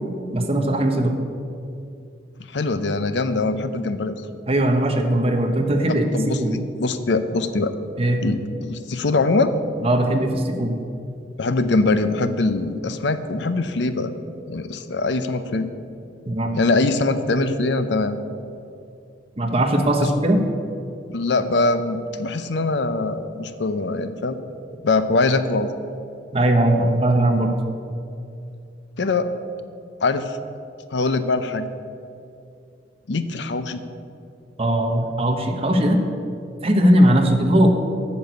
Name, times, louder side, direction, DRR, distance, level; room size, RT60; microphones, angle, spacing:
voice 1, 0.3-1.2 4.5-6.1 6.4-6.5 8.0-8.2 9.8-10.7 16.2-16.5 19.4-20.4 26.3-27.5 34.6-36.0 36.6-37.7, right 1 dB, 30° right, 4 dB, 1.0 m, -19 dB
voice 2, 2.5-4.2 5.9-7.8 8.2-9.5 11.4-14.1 14.5-15.7 16.5-18.2 20.0-20.1 21.1-24.4 24.8-25.7 29.0-29.3 30.0-30.4 30.9-31.7 33.1-33.8, left 3 dB, 70° left, 11 dB, 0.6 m, -22 dB
8.5 x 6.1 x 8.2 m, 2.5 s
head